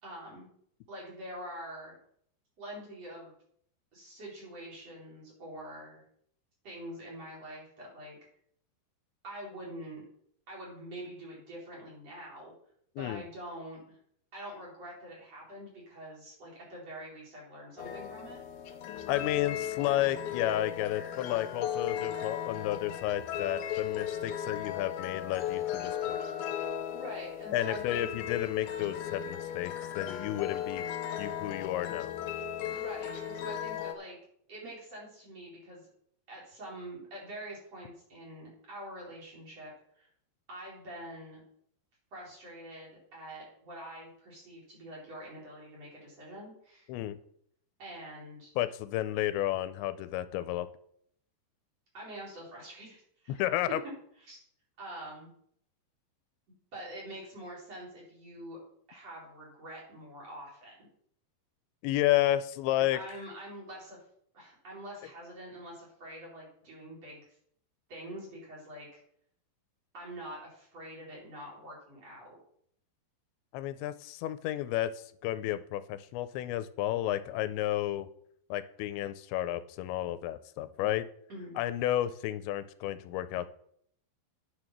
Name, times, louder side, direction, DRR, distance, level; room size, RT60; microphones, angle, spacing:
voice 1, 0.0-0.5 0.9-1.9 2.6-3.3 3.9-6.0 6.6-8.2 9.2-10.0 10.5-12.5 13.0-14.0 14.3-18.4 26.9-28.1 32.7-34.2 34.5-35.8 36.3-40.1 40.5-41.4 42.1-46.9 47.8-48.5 51.9-53.8 54.2-54.4 54.8-55.3 56.7-58.6 58.9-60.9 62.7-64.0 64.3-67.3 67.9-69.0 69.9-72.4 81.3-81.6, right 1 dB, 35° right, -5 dB, 4.7 m, -45 dB
sound 1, 17.8-33.9, left 9 dB, 70° left, 2.3 m, -36 dB
voice 2, 19.1-26.2 27.5-30.9 31.2-32.1 46.9-47.2 48.6-50.7 53.3-53.8 61.8-63.0 73.5-78.1 78.5-81.1 81.6-83.5, left 13 dB, 90° left, 13 dB, 2.9 m, -32 dB
9.7 x 6.6 x 6.0 m, 0.67 s
omnidirectional pair, 5.1 m